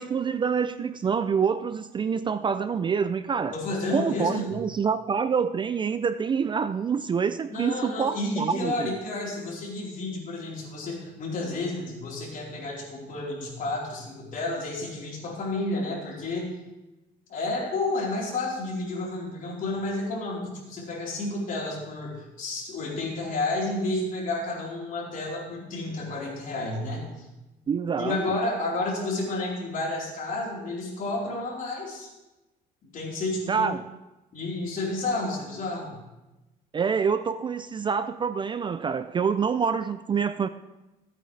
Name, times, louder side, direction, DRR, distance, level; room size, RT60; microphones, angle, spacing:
voice 1, 0.0-3.5 3.9-9.0 27.7-28.2 33.5-33.8 36.7-40.5, right 6 dB, 30° right, 12 dB, 0.4 m, -26 dB
voice 2, 3.5-4.5 7.5-16.5 17.3-27.2 28.0-32.1 32.8-33.7 34.3-35.9, left 2 dB, 55° left, -4 dB, 4.1 m, -31 dB
15.5 x 8.7 x 3.3 m, 1.0 s
cardioid pair, 110°, 17 cm